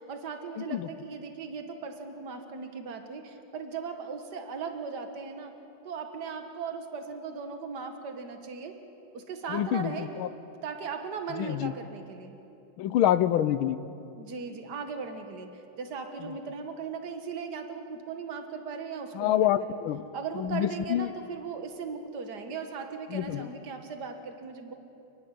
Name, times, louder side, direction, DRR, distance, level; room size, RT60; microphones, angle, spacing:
voice 1, 0.0-5.6 5.8-8.8 9.1-10.1 10.6-12.4 14.2-19.4 20.1-24.7, right 5 dB, 55° right, 5 dB, 2.1 m, -38 dB
voice 2, 0.6-0.9 9.5-10.3 11.4-11.7 12.8-13.8 16.2-16.3 19.1-20.0 20.3-21.1 23.1-23.5, left 11 dB, 85° left, 14 dB, 1.6 m, -27 dB
29.5 x 11.5 x 10.0 m, 2.8 s
omnidirectional pair, 2.3 m